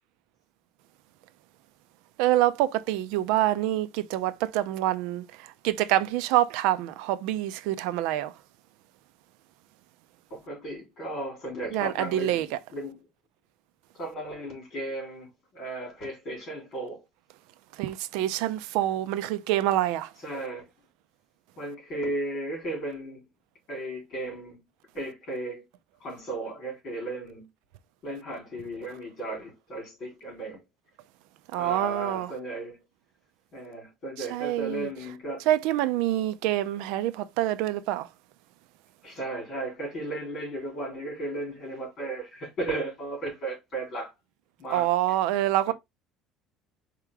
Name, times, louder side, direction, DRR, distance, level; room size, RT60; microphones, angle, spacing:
voice 1, 2.2-8.3 11.7-12.5 17.8-20.1 31.5-32.3 34.3-34.9 35.5-38.1 44.7-45.7, right 14 dB, 85° right, 0.5 m, -26 dB
voice 2, 10.3-13.1 13.9-17.0 20.2-20.7 21.6-23.2 23.7-24.6 24.9-25.6 26.0-27.5 28.0-30.6 31.6-32.8 33.5-35.5 39.0-44.1 44.6-44.9 45.7-45.8, right 2 dB, 40° left, 3.4 m, -35 dB
4.8 x 3.0 x 3.5 m
cardioid pair, 150°, 0 cm